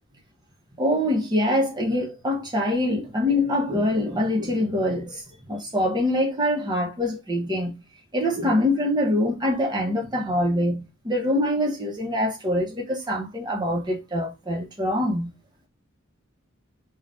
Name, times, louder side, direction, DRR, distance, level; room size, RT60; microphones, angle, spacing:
voice 1, 0.8-5.2 5.5-7.8 8.1-15.3, left 1 dB, 20° right, 0.9 m, -24 dB
2.6 x 2.3 x 3.3 m
head